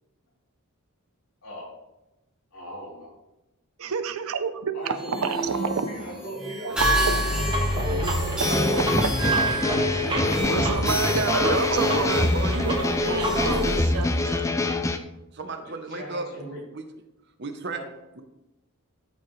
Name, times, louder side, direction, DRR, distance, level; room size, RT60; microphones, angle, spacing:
voice 1, 2.5-3.1 4.7-10.5 11.0-12.3 12.9-13.3 15.9-16.6 17.7-17.9, left 1 dB, 70° left, 3.4 m, -38 dB
voice 2, 3.8-5.7 6.6-7.2 8.7-9.1 10.0-12.8 13.1-14.4, right 5 dB, 75° right, 0.6 m, -29 dB
sound 1, 4.8-14.4, right 1 dB, 5° right, 1.4 m, -30 dB
sound 2, 6.8-13.8, equal, 20° right, 1.5 m, -28 dB
sound 3, 8.4-15.0, left 2 dB, 15° left, 0.4 m, -25 dB
voice 3, 11.4-11.9 12.3-13.6 15.3-16.3 16.7-16.8 17.4-17.8 18.1-18.2, right 3 dB, 50° right, 0.9 m, -33 dB
13.0 x 5.4 x 3.2 m
head